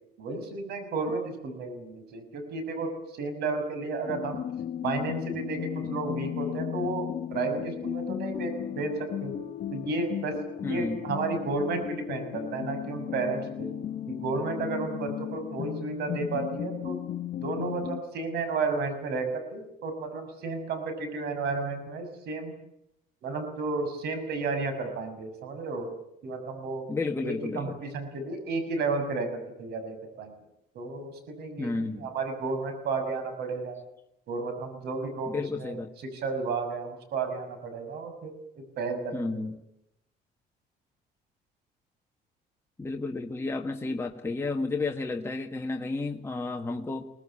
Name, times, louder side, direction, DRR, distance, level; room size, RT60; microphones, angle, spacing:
voice 1, 0.2-4.4 4.8-9.3 9.7-10.4 10.6-13.7 14.1-17.0 17.4-22.5 23.2-25.9 26.2-26.8 27.2-30.3 30.7-33.8 34.3-35.8 36.1-39.3, right 3 dB, 75° right, 8 dB, 6.2 m, -32 dB
sound 1, 4.0-18.0, left 10 dB, 55° left, 0.9 m, -35 dB
voice 2, 10.6-11.0 26.9-27.8 31.6-32.1 35.3-35.9 39.1-39.6 42.8-47.1, left 3 dB, 15° left, 2 dB, 1.6 m, -32 dB
23.0 x 19.5 x 8.7 m, 0.82 s
cardioid pair, 110°, 17 cm